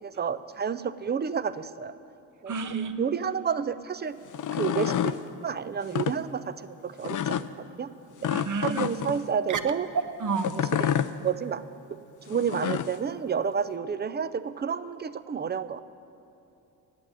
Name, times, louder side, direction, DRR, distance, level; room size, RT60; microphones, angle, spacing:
voice 1, 0.0-1.9 2.4-4.2 4.5-7.9 8.2-8.3 8.6-9.9 10.5-11.0 11.2-11.6 11.9-12.0 12.3-15.8, right 7 dB, 20° right, 15 dB, 0.4 m, -30 dB
voice 2, 2.5-3.0 8.3-8.8 9.5-9.6 10.2-10.5, right 5 dB, 40° right, 9 dB, 0.9 m, -30 dB
sound 1, 4.3-5.2 5.8-6.2 7.0-7.5 8.2-9.2 10.4-11.1 12.3-13.0, left 10 dB, 40° left, 0.5 m, -28 dB
8.9 x 7.8 x 9.1 m, 2.7 s
hypercardioid pair, 45°, 48 cm